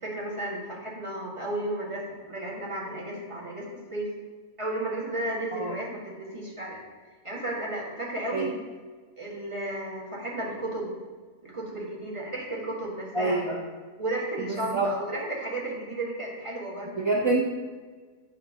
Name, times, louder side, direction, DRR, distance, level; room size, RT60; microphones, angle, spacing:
voice 1, 0.0-3.6 3.9-4.1 4.6-6.8 7.2-8.5 9.2-10.9 11.4-13.4 14.0-17.4, right 1 dB, 20° right, -4 dB, 1.6 m, -33 dB
voice 2, 13.1-13.6 14.5-14.9 17.0-17.4, right 3 dB, 40° right, -3 dB, 0.4 m, -26 dB
9.3 x 3.3 x 5.4 m, 1.5 s
omnidirectional pair, 1.5 m